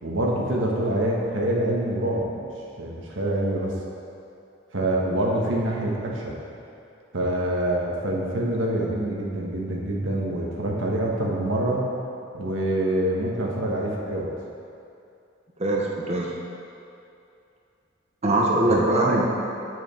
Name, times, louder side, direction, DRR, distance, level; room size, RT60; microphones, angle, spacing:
voice 1, 0.0-2.5 2.8-3.7 4.7-6.3 7.1-11.8 12.3-14.3 18.6-19.3, right 1 dB, 90° right, -3 dB, 1.4 m, -26 dB
voice 2, 15.6-16.4 18.2-19.3, right 1 dB, 35° right, -2 dB, 0.8 m, -22 dB
9.1 x 6.4 x 4.4 m, 2.6 s
head